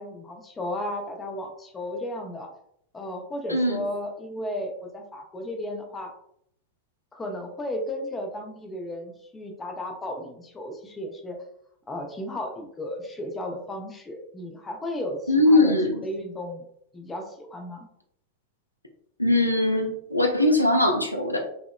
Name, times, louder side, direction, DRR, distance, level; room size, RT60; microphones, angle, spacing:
voice 1, 0.0-2.5 2.9-6.1 7.1-11.4 11.9-16.6 16.9-17.9, left 1 dB, 15° left, 3 dB, 0.4 m, -34 dB
voice 2, 3.5-3.8 15.3-16.0 19.2-21.4, left 1 dB, 85° left, 2 dB, 0.3 m, -21 dB
2.7 x 2.0 x 2.2 m, 0.71 s
figure-of-eight pair, 90°, 0 cm